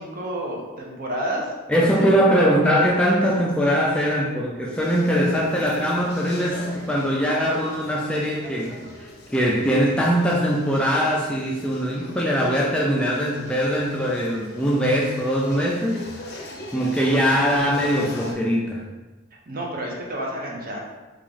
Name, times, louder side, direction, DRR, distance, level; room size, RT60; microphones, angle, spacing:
voice 1, 0.0-1.5 1.8-2.1 19.5-20.8, right 1 dB, 45° right, -2 dB, 0.7 m, -30 dB
voice 2, 1.7-16.3 16.7-18.9, equal, 5° left, -3 dB, 0.3 m, -22 dB
sound 1, 4.7-18.3, left 1 dB, 55° left, 0.5 m, -41 dB
3.0 x 2.4 x 3.8 m, 1.2 s
head